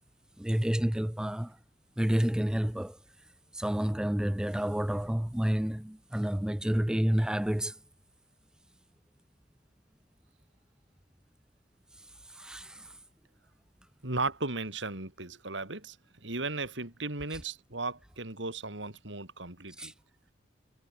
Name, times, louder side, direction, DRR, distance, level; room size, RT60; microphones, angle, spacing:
voice 1, 0.4-1.6 2.0-3.0 3.5-7.8 12.0-13.0 19.8-19.9, equal, 5° right, 0.4 m, -30 dB
voice 2, 14.0-16.0 16.2-19.9, right 3 dB, 80° right, 4.1 m, -36 dB
head